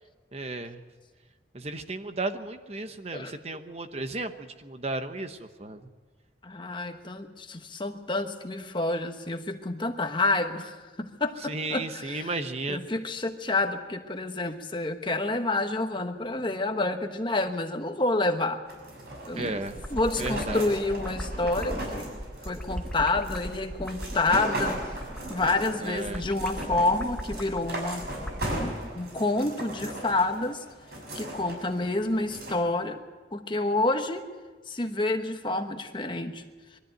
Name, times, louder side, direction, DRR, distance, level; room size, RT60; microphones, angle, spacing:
voice 1, 0.3-0.8 1.5-5.9 11.4-12.9 19.4-19.8 20.2-20.7 25.8-26.3, right 2 dB, 35° right, 8 dB, 1.0 m, -34 dB
voice 2, 6.4-12.3 12.7-18.6 19.3-19.6 19.9-22.1 22.4-24.9 25.3-28.1 28.5-30.6 31.1-33.0 33.3-34.2 34.7-36.4, left 2 dB, 25° left, 6 dB, 1.2 m, -28 dB
sound 1, 18.6-32.5, right 1 dB, 60° right, 6.4 m, -38 dB
sound 2, 19.7-28.7, equal, 5° left, 1.1 m, -38 dB
22.5 x 13.5 x 9.1 m, 1.3 s
head